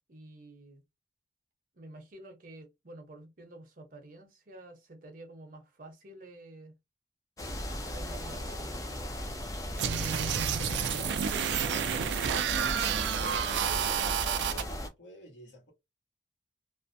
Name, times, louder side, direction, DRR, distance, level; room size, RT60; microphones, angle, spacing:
voice 1, 0.1-0.8 1.7-6.7 7.5-8.8, right 2 dB, 45° right, 0.7 m, -50 dB
sound 1, 7.4-14.9, left 1 dB, 20° left, 0.4 m, -37 dB
sound 2, 9.8-14.6, right 8 dB, 70° right, 0.3 m, -30 dB
voice 2, 9.9-11.1 11.4-13.0 13.4-14.2 14.5-15.7, left 1 dB, 70° left, 1.0 m, -50 dB
2.4 x 2.1 x 2.5 m
head